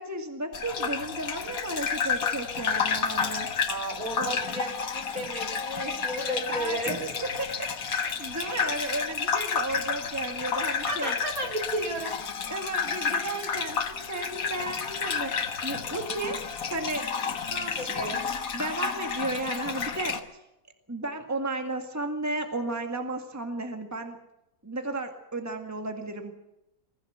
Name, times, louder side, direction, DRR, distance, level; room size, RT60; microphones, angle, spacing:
voice 1, 0.0-3.5 4.2-4.4 6.5-7.1 7.4-11.1 12.5-17.4 17.8-18.1 18.5-20.2 20.9-24.2 24.6-26.3, right 2 dB, 10° right, 5 dB, 2.0 m, -34 dB
Gurgling / Bathtub (filling or washing), 0.5-20.2, left 6 dB, 65° left, 1.8 m, -31 dB
voice 2, 3.7-7.0 10.9-12.2 17.5-18.2, right 1 dB, 65° right, 2 dB, 4.4 m, -33 dB
22.0 x 16.0 x 8.1 m, 0.87 s
omnidirectional pair, 1.6 m